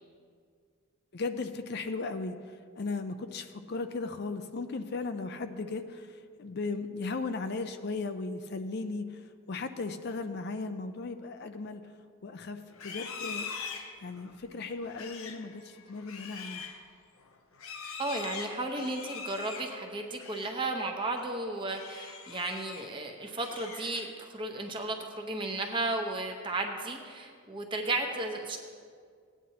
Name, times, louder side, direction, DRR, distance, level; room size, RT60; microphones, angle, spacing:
voice 1, 1.1-11.9 12.2-13.5 14.0-16.6, left 3 dB, 50° left, 8 dB, 0.4 m, -36 dB
Livestock farm animals working animals, 12.7-20.6 21.0-21.3 21.7-22.9 23.3-24.3, left 5 dB, 75° left, 0.8 m, -43 dB
voice 2, 18.0-28.6, right 2 dB, 20° right, 3 dB, 0.9 m, -34 dB
17.0 x 9.4 x 2.8 m, 2.1 s
head